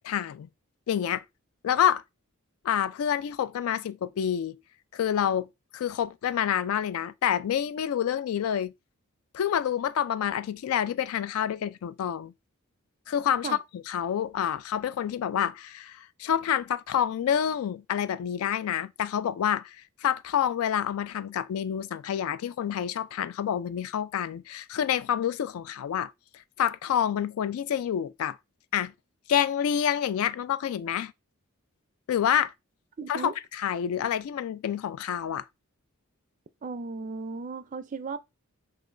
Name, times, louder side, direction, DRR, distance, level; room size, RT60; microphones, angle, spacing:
voice 1, 0.0-0.5 0.9-1.2 1.6-2.0 2.6-4.6 4.9-5.5 5.7-8.7 9.3-12.3 13.1-19.8 20.0-26.1 26.6-28.4 28.7-28.9 29.3-31.1 32.1-32.5 33.1-35.5, left 9 dB, 80° left, 0.3 m, -28 dB
voice 2, 33.0-33.3 36.6-38.2, right 4 dB, 35° right, 0.3 m, -35 dB
3.2 x 2.8 x 3.8 m
head